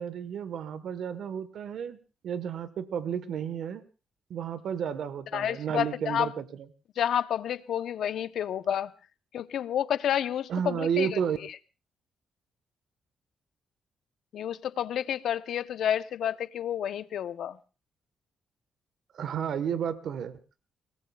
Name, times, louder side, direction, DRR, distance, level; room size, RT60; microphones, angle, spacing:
voice 1, 0.0-2.0 2.2-3.8 4.3-6.4 10.5-11.4 19.1-20.4, right 8 dB, 70° right, 12 dB, 1.2 m, -32 dB
voice 2, 5.3-6.3 7.0-8.9 9.3-11.6 14.3-17.6, left 10 dB, 75° left, 12 dB, 0.8 m, -30 dB
30.0 x 19.0 x 2.3 m, 0.34 s
cardioid pair, 100°, 0 cm